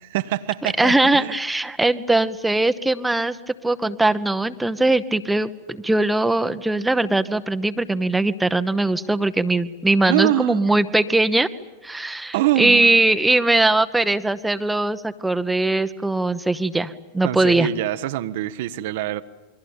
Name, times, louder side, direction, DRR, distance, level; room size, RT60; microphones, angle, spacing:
voice 1, 0.0-1.4 10.1-10.6 12.3-13.0 17.2-19.2, right 14 dB, 50° right, 11 dB, 0.9 m, -24 dB
voice 2, 0.6-3.4 3.6-11.5 11.8-17.7, right 2 dB, 5° right, 10 dB, 0.9 m, -20 dB
28.0 x 23.0 x 9.0 m, 1.1 s
figure-of-eight pair, 90°, 0 cm